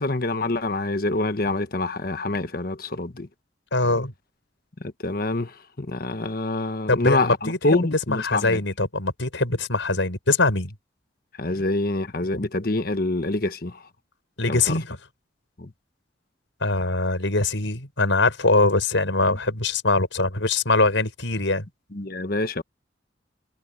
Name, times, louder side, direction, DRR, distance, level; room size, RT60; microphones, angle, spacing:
voice 1, 0.0-3.3 4.8-8.6 11.4-13.8 14.5-14.8 15.6-15.7 21.9-22.6, left 2 dB, 50° left, 1.3 m, -26 dB
voice 2, 3.7-4.1 6.9-7.8 8.1-10.7 14.4-15.0 16.6-21.7, left 3 dB, 90° left, 5.5 m, -22 dB
head